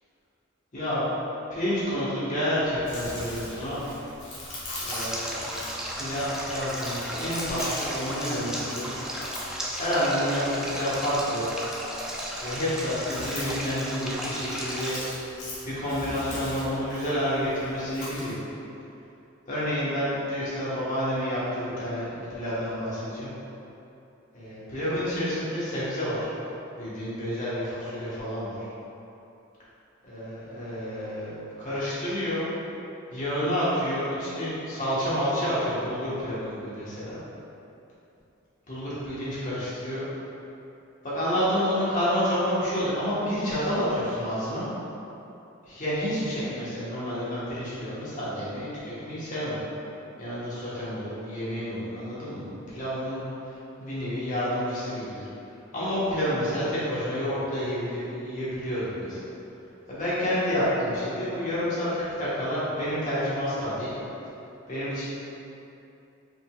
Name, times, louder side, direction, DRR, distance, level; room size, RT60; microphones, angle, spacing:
voice 1, 0.7-1.1 1.5-3.8 4.8-5.5 5.9-9.0 9.7-11.5 12.4-15.0 15.6-18.4 19.5-23.3 24.3-26.3 26.8-28.7 30.0-32.5 33.1-37.2 38.7-40.0 41.0-44.7 45.7-49.6 50.2-55.3 55.7-59.2 59.9-63.9 64.7-65.0, equal, 40° left, -10 dB, 1.3 m, -29 dB
Chewing mastication, 2.6-18.3, left 1 dB, 60° left, 1.3 m, -41 dB
Stream, 4.9-14.9, equal, 5° right, 0.4 m, -35 dB
5.0 x 3.9 x 2.4 m, 2.9 s
head